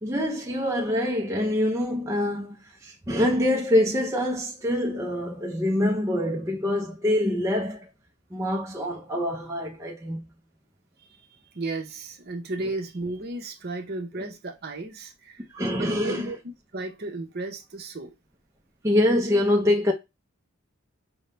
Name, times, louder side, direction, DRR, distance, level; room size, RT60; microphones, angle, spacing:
voice 1, 0.0-2.6 2.8-7.8 8.3-10.2 15.5-16.3 18.8-19.9, left 1 dB, 15° right, 0.5 m, -25 dB
voice 2, 11.5-15.4 15.7-16.4 16.7-18.1, right 2 dB, 45° right, 0.8 m, -34 dB
5.5 x 2.1 x 3.3 m
head